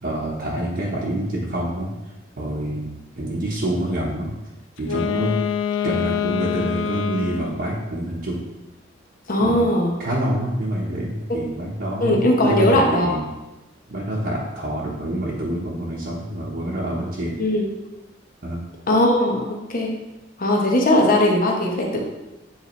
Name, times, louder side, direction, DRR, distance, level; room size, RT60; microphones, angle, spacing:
voice 1, 0.0-1.9 2.4-2.9 3.1-4.3 4.8-5.3 5.8-8.4 9.4-9.7 10.0-13.2 13.9-17.3 18.4-18.6, right 1 dB, 55° right, -6 dB, 1.1 m, -26 dB
Wind instrument woodwind instrument, 4.8-7.7, left 7 dB, 85° left, 0.4 m, -25 dB
voice 2, 9.3-10.0 12.0-13.1 17.4-17.7 18.9-19.4 19.7-19.9 20.4-22.0, left 1 dB, 50° left, 0 dB, 1.0 m, -19 dB
7.6 x 4.1 x 3.1 m, 1.0 s
head